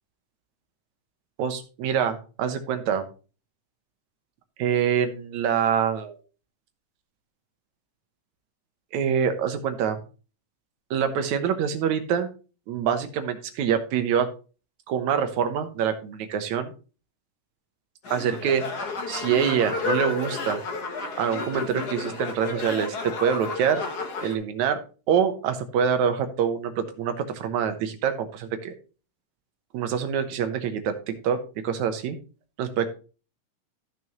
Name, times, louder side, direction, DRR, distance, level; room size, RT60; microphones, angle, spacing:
voice 1, 1.4-3.0 4.6-6.2 8.9-10.0 10.9-12.3 12.7-14.3 14.9-16.7 18.1-18.6 19.1-20.6 21.2-23.8 24.2-24.8 25.1-28.7 29.7-31.4 31.6-32.2 32.6-32.9, right 8 dB, 70° right, 8 dB, 2.3 m, -25 dB
sound 1, 18.0-24.3, left 4 dB, 65° left, 1.0 m, -32 dB
14.0 x 6.1 x 3.0 m, 0.35 s
omnidirectional pair, 3.7 m